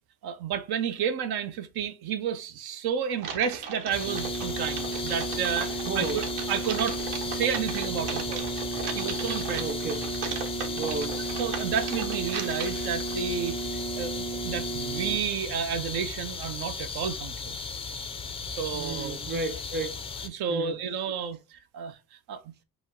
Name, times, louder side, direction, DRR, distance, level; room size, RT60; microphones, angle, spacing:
voice 1, 0.2-8.5 8.9-9.7 11.4-17.6 18.5-19.2 20.3-22.0 22.3-22.4, right 7 dB, 70° right, 0.7 m, -31 dB
Typing, 3.2-13.7, right 6 dB, 90° right, 1.1 m, -37 dB
sound 1, 3.9-20.3, left 5 dB, 15° left, 0.3 m, -36 dB
sound 2, 4.0-15.2, right 3 dB, 50° right, 1.4 m, -34 dB
voice 2, 5.9-6.2 9.6-10.1 10.8-11.2 18.7-20.0 20.5-20.8, right 3 dB, 25° right, 0.6 m, -33 dB
5.0 x 2.1 x 3.6 m
cardioid pair, 140°, 40 cm